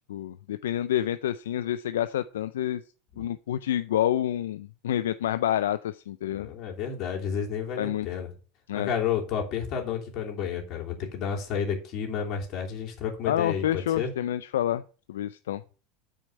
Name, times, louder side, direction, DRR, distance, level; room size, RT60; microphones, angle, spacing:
voice 1, 0.1-2.8 3.2-6.5 7.8-8.1 8.7-8.9 13.2-14.8 15.1-15.6, left 11 dB, 80° left, 13 dB, 0.4 m, -28 dB
voice 2, 6.3-8.3 8.7-14.1, left 7 dB, 50° left, 1 dB, 3.0 m, -31 dB
9.1 x 4.5 x 6.4 m, 0.37 s
hypercardioid pair, 95°, 0 cm